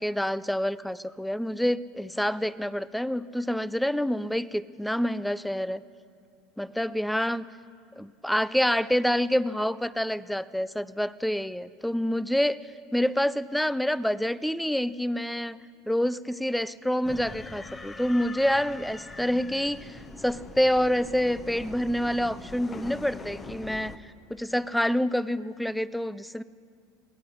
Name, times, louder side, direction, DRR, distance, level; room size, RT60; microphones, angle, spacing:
voice 1, 0.0-5.8 6.6-7.5 8.0-15.6 15.9-26.4, equal, ahead, 17 dB, 0.4 m, -27 dB
sound 1, 17.0-24.0, left 3 dB, 20° left, 1.1 m, -42 dB
22.5 x 18.0 x 6.6 m, 2.3 s
supercardioid pair, 135°, 0 cm